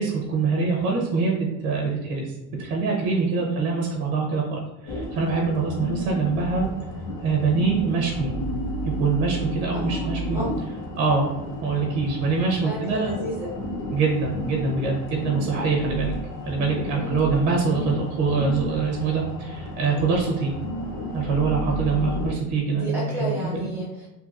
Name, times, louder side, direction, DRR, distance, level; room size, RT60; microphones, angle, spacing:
voice 1, 0.0-1.3 1.6-2.3 2.6-6.7 7.2-8.3 8.8-10.4 11.0-13.1 13.9-16.1 16.4-20.5 21.1-23.7, right 4 dB, 70° right, -1 dB, 0.7 m, -24 dB
sound 1, 4.9-22.3, equal, 65° left, 0.8 m, -32 dB
voice 2, 9.7-10.5 12.6-13.5 17.0-17.3 21.9-22.3 22.7-24.1, equal, 5° right, -7 dB, 1.0 m, -32 dB
2.8 x 2.7 x 2.4 m, 0.97 s
cardioid pair, 150°, 35 cm